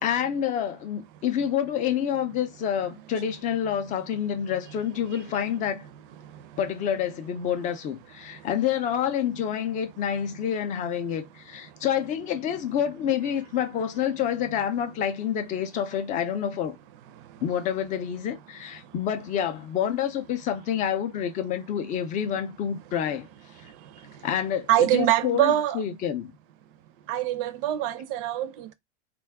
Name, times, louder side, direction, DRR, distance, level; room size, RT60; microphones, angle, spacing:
voice 1, 0.0-5.9 6.6-16.8 17.4-23.3 24.2-26.3, left 9 dB, 20° left, 0.3 m, -28 dB
voice 2, 24.7-25.8 27.1-28.7, right 13 dB, 50° right, 0.5 m, -24 dB
2.3 x 2.1 x 3.4 m
hypercardioid pair, 115°, 36 cm